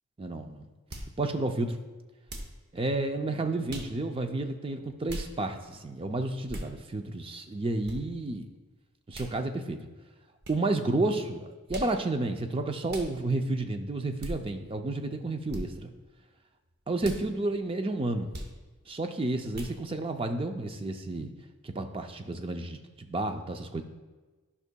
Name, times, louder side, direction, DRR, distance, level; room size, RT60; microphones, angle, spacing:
voice 1, 0.2-0.6 1.2-1.8 2.7-8.5 9.1-9.8 10.5-15.9 16.9-18.3 18.9-21.3 21.6-23.8, right 2 dB, 25° right, 6 dB, 0.4 m, -31 dB
sound 1, 0.9-1.1 2.3-2.6 3.7-3.9 5.1-5.3 6.5-6.7 7.8-8.0 9.1-9.3 10.4-10.6 11.7-11.9 12.9-13.1 14.2-14.4 15.5-15.6 17.0-17.2 18.3-18.5 19.5-19.7, right 1 dB, 45° right, 0.7 m, -38 dB
11.0 x 5.5 x 2.2 m, 1.3 s
head